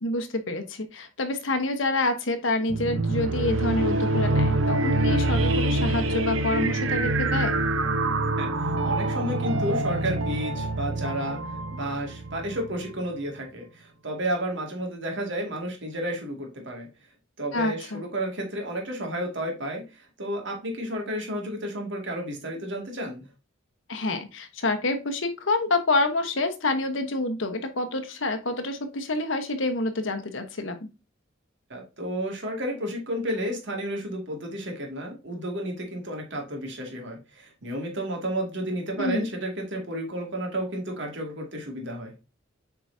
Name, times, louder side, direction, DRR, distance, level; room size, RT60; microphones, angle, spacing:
voice 1, 0.0-7.6 17.5-18.0 23.9-30.7 39.0-39.3, left 2 dB, 70° left, 7 dB, 1.1 m, -27 dB
sound 1, 2.7-12.9, right 2 dB, 80° right, 0.8 m, -26 dB
voice 2, 8.4-11.4 11.7-16.9 17.4-23.3 31.7-42.1, equal, 65° right, 1 dB, 2.2 m, -32 dB
7.8 x 4.7 x 2.7 m, 0.28 s
head